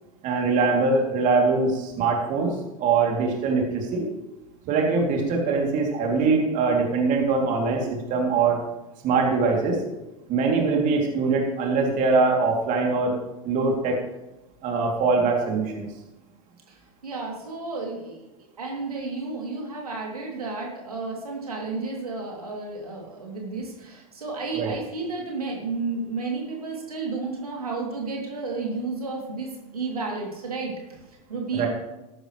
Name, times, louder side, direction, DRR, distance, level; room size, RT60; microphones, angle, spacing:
voice 1, 0.2-2.5 2.8-4.1 4.7-8.6 9.0-9.8 10.3-13.2 13.4-14.0 14.6-15.9 24.5-24.7 31.5-31.7, right 4 dB, 45° right, 0 dB, 2.9 m, -22 dB
voice 2, 17.0-30.7 31.3-31.7, right 3 dB, 85° right, -1 dB, 3.0 m, -32 dB
14.0 x 12.0 x 3.3 m, 0.99 s
hypercardioid pair, 90°, 19 cm